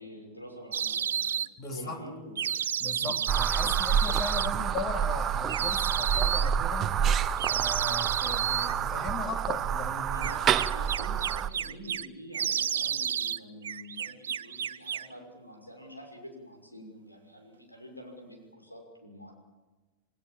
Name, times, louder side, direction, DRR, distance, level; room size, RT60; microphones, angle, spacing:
voice 1, 0.0-1.4 1.7-2.4 3.0-3.1 10.1-19.3, equal, 85° left, 3 dB, 6.2 m, -46 dB
sound 1, 0.7-1.5 2.4-4.5 5.5-6.5 7.4-8.7 10.2-12.1 12.3-13.4 13.6-15.1, right 9 dB, 65° right, 0.7 m, -31 dB
voice 2, 1.6-2.0 2.8-10.3, left 3 dB, 30° left, 6 dB, 3.3 m, -38 dB
sound 2, 3.3-11.5, right 8 dB, 30° right, 0.9 m, -28 dB
28.0 x 18.5 x 7.5 m, 1.2 s
figure-of-eight pair, 90°, 0 cm